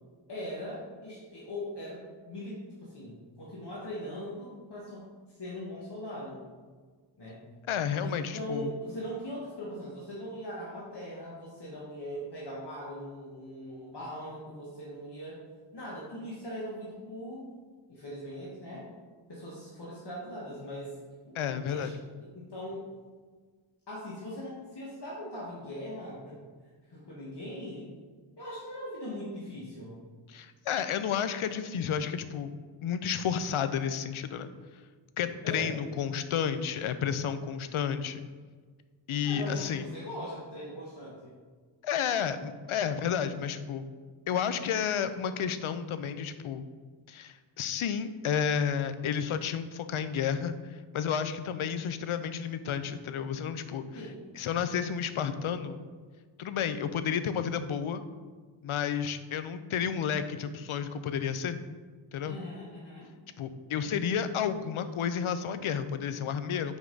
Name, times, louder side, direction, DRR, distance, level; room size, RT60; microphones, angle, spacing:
voice 1, 0.3-6.4 7.2-7.4 8.0-15.4 15.7-17.5 17.9-18.9 19.3-21.0 21.2-21.4 21.7-21.9 22.2-22.9 23.9-26.4 26.9-27.9 28.4-30.0 35.4-35.8 39.2-41.3 53.9-54.2 62.2-63.1, equal, 55° left, -6 dB, 1.3 m, -40 dB
voice 2, 7.7-8.7 21.3-21.9 30.3-32.5 32.8-34.5 35.2-38.2 39.1-39.8 41.8-43.8 44.3-46.6 47.1-54.0 54.4-55.8 56.4-58.0 58.6-61.6 62.1-62.4 63.4-66.8, left 7 dB, 80° left, 11 dB, 0.5 m, -31 dB
5.4 x 4.6 x 3.8 m, 1.5 s
wide cardioid pair, 100°, 48 cm